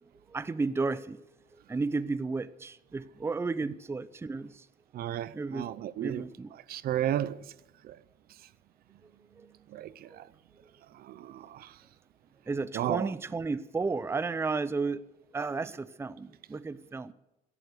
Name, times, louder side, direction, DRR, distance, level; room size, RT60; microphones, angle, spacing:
voice 1, 0.0-1.2 1.7-4.7 5.3-5.7 6.0-6.5 9.4-9.5 10.1-10.3 12.5-15.0 15.3-17.1, right 4 dB, 15° right, 0.6 m, -33 dB
voice 2, 4.9-6.2 6.7-7.4 7.8-8.0 9.7-10.3 10.9-11.7 12.7-13.1, right 12 dB, 65° right, 0.7 m, -33 dB
16.0 x 11.0 x 6.7 m
cardioid pair, 110°, 17 cm